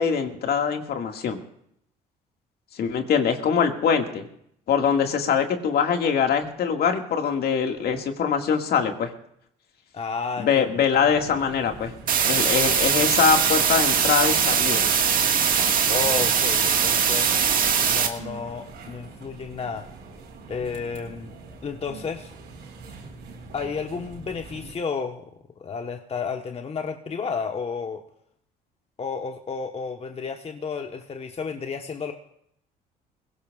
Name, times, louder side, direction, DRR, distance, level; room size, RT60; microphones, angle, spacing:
voice 1, 0.0-1.4 2.7-4.3 4.7-9.1 10.4-11.9 12.2-14.9, left 6 dB, 60° left, 4 dB, 2.0 m, -23 dB
voice 2, 9.9-10.7 15.9-17.3 17.9-19.9 20.5-22.3 23.5-25.3 25.6-28.0 29.0-32.1, left 5 dB, 35° left, 5 dB, 1.2 m, -32 dB
sound 1, 10.9-24.7, right 4 dB, 70° right, 4.3 m, -42 dB
sound 2, 12.1-18.1, right 7 dB, 50° right, 1.7 m, -21 dB
21.5 x 16.5 x 2.4 m, 0.71 s
supercardioid pair, 75°, 18 cm